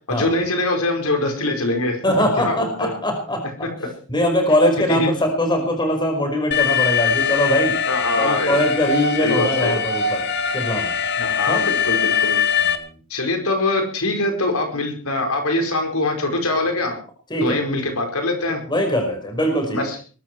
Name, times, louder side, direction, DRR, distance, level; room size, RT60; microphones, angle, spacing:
voice 1, 0.1-2.0 2.4-2.9 3.6-3.9 4.9-5.1 7.8-8.6 9.2-9.8 11.2-12.4 13.1-17.0 17.4-18.6 19.7-20.0, left 2 dB, 80° left, 4 dB, 5.1 m, -23 dB
voice 2, 2.0-3.4 4.1-7.8 8.2-10.2 10.5-10.9 11.5-11.6 17.3-17.6 18.7-19.8, left 1 dB, 20° left, 4 dB, 5.3 m, -21 dB
Alarm, 6.5-12.8, left 6 dB, 50° left, 2.0 m, -22 dB
21.5 x 13.5 x 4.8 m, 0.39 s
head